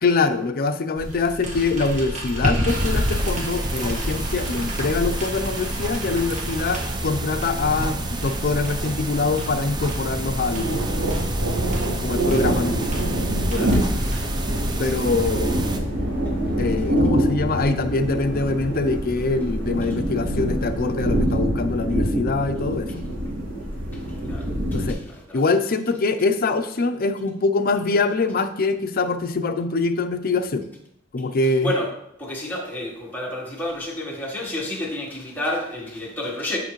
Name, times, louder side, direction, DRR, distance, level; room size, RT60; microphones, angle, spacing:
voice 1, 0.0-10.9 12.0-12.9 13.5-14.2 14.8-15.7 16.6-23.0 24.7-25.0 25.3-30.7 31.1-31.7, left 3 dB, 50° left, 0.5 m, -24 dB
sound 1, 1.0-14.7, equal, 40° right, 1.3 m, -31 dB
sound 2, 2.7-15.8, right 1 dB, 20° right, 0.6 m, -30 dB
sound 3, 9.7-24.9, right 1 dB, 80° right, 2.9 m, -25 dB
voice 2, 13.5-13.8 23.9-24.0 24.3-25.4 31.6-31.9 32.2-36.6, left 1 dB, 10° left, 1.3 m, -30 dB
6.9 x 5.7 x 3.1 m
head